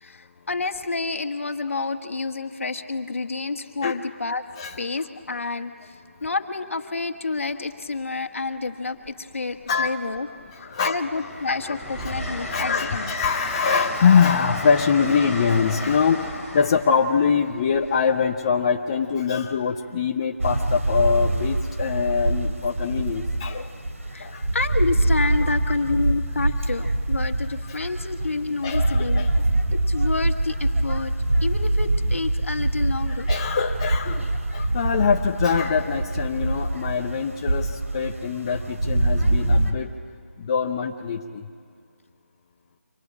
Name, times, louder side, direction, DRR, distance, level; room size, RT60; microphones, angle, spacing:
voice 1, 0.0-4.4 4.8-5.9 6.2-10.3 10.6-13.1 24.1-29.3 29.7-31.1 31.4-33.3, left 3 dB, 65° left, 7 dB, 1.6 m, -29 dB
Train, 7.5-7.7 9.0-9.7 10.1-18.9 20.5-20.7, left 1 dB, 5° right, 2.5 m, -34 dB
voice 2, 10.5-10.9 12.0-12.1 12.5-16.3 16.5-23.6 24.2-24.4 27.7-27.8 28.6-29.5 33.1-39.9 40.4-41.4, left 6 dB, 25° left, 2 dB, 0.7 m, -23 dB
sound 1, 20.4-39.7, right 1 dB, 70° right, 3.0 m, -24 dB
25.0 x 19.0 x 8.7 m, 2.1 s
figure-of-eight pair, 165°, 8 cm